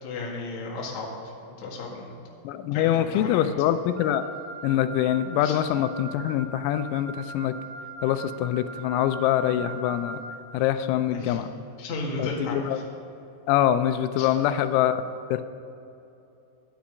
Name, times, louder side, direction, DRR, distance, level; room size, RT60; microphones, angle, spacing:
voice 1, 0.0-1.3 1.6-2.2 2.7-3.4 5.4-5.6 11.1-12.6 14.2-14.3, left 3 dB, 55° left, -3 dB, 2.1 m, -34 dB
voice 2, 2.4-4.2 4.6-7.5 8.0-10.2 10.5-11.5 12.2-12.8 13.5-15.0 15.3-15.4, left 11 dB, 90° left, 11 dB, 3.3 m, -24 dB
Wind instrument woodwind instrument, 4.0-10.4, right 3 dB, 75° right, 5.4 m, -40 dB
12.0 x 10.0 x 5.1 m, 2.8 s
omnidirectional pair, 5.9 m